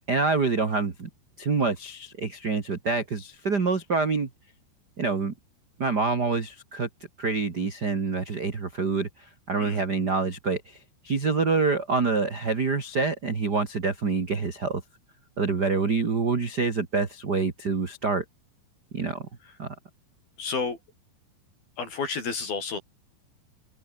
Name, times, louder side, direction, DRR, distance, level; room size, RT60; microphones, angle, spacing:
voice 1, 0.1-1.1 1.4-4.3 5.0-5.3 5.8-6.9 7.2-14.8 15.4-18.2 18.9-19.3 19.6-19.7, right 4 dB, 55° right, 1.1 m, -26 dB
voice 2, 20.4-20.8 21.8-22.8, left 5 dB, 50° left, 7.7 m, -30 dB
omnidirectional pair, 5.5 m